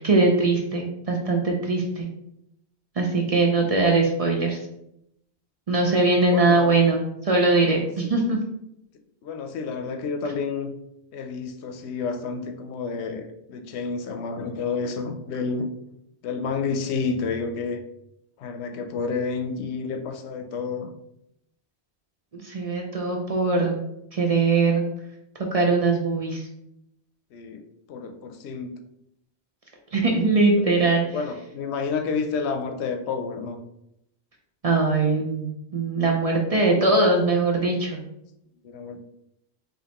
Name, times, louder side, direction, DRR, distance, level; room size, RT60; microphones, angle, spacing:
voice 1, 0.0-2.1 3.0-4.6 5.7-8.4 22.3-23.8 24.1-24.9 25.5-26.5 29.9-31.2 34.6-38.0, right 3 dB, 40° right, 0 dB, 0.6 m, -21 dB
voice 2, 6.3-6.7 9.2-10.7 11.1-15.7 16.2-17.8 18.4-20.9 27.3-27.6 27.9-28.7 30.8-33.6 38.6-39.0, left 5 dB, 90° left, 7 dB, 0.9 m, -30 dB
5.1 x 2.7 x 2.9 m, 0.80 s
omnidirectional pair, 1.1 m